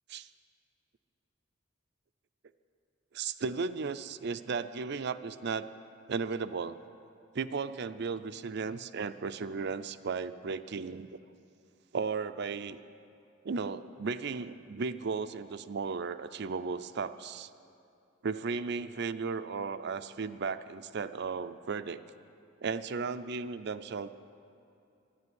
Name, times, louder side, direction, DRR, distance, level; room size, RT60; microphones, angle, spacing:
voice 1, 3.1-5.7 6.1-6.8 7.3-11.2 11.9-12.8 13.4-17.5 18.2-22.0 22.6-24.1, right 5 dB, 55° right, 12 dB, 0.5 m, -35 dB
12.5 x 11.0 x 9.6 m, 2.6 s
head